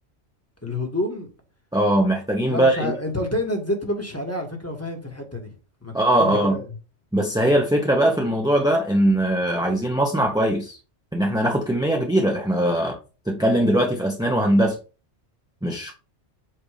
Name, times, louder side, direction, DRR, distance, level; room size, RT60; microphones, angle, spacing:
voice 1, 0.6-1.3 2.4-5.5 5.8-6.6, left 1 dB, 15° left, 1.3 m, -28 dB
voice 2, 1.7-2.9 5.9-6.6 7.1-10.8 11.1-13.0 13.3-14.7 15.6-15.9, right 1 dB, 5° right, 0.7 m, -20 dB
7.8 x 2.6 x 4.9 m
omnidirectional pair, 1.2 m